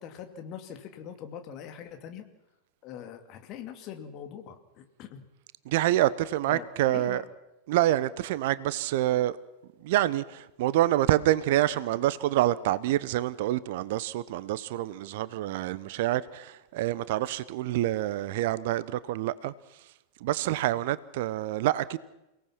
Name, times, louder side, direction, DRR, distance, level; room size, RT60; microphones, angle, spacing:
voice 1, 0.0-2.3 2.8-5.3 6.5-7.3, left 8 dB, 40° left, 2.7 m, -42 dB
voice 2, 5.6-7.2 7.7-9.4 9.8-19.5 20.2-22.0, right 14 dB, 50° right, 0.9 m, -27 dB
28.5 x 18.0 x 6.1 m
figure-of-eight pair, 90°, 0 cm